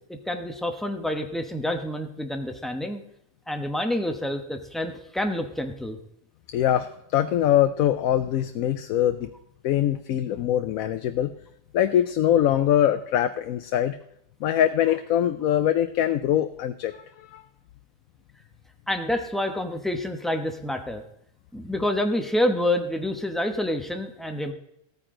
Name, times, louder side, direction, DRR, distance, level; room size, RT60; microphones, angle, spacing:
voice 1, 0.1-3.0 3.5-6.0 18.9-21.0 21.5-24.5, left 1 dB, ahead, 5 dB, 0.9 m, -28 dB
voice 2, 6.5-9.3 9.6-11.3 11.7-14.0 14.4-17.4, left 11 dB, 90° left, 9 dB, 1.1 m, -23 dB
14.5 x 9.1 x 3.8 m, 0.74 s
omnidirectional pair, 1.4 m